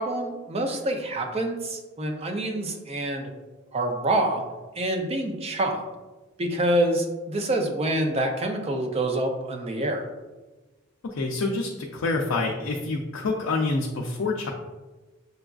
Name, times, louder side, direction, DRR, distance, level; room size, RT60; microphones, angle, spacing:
voice 1, 0.0-3.3 3.7-4.4 4.7-5.8 6.4-10.0, right 1 dB, 30° right, 3 dB, 0.5 m, -26 dB
voice 2, 11.0-14.5, left 3 dB, 80° left, -1 dB, 0.4 m, -27 dB
6.8 x 2.4 x 2.3 m, 1.2 s
head